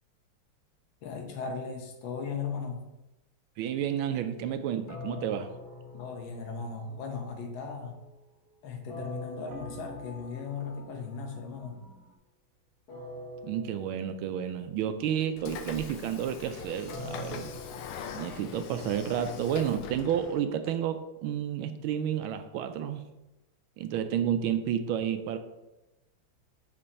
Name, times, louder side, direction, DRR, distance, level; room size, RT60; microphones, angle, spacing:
voice 1, 1.0-2.8 5.9-8.0 8.6-11.8, left 5 dB, 70° left, 4 dB, 1.6 m, -37 dB
voice 2, 3.6-5.5 13.4-17.5 18.1-23.0 23.8-25.4, right 9 dB, 80° right, 9 dB, 1.3 m, -31 dB
sound 1, 4.9-6.9 8.9-10.7 12.9-14.7 16.9-19.1, left 2 dB, 50° left, 1.9 m, -44 dB
sound 2, 5.3-9.2 9.5-12.2, right 2 dB, 60° right, 1.5 m, -53 dB
Train / Sliding door, 15.4-20.4, left 7 dB, 85° left, 1.5 m, -42 dB
5.4 x 5.2 x 4.1 m, 0.98 s
omnidirectional pair, 2.3 m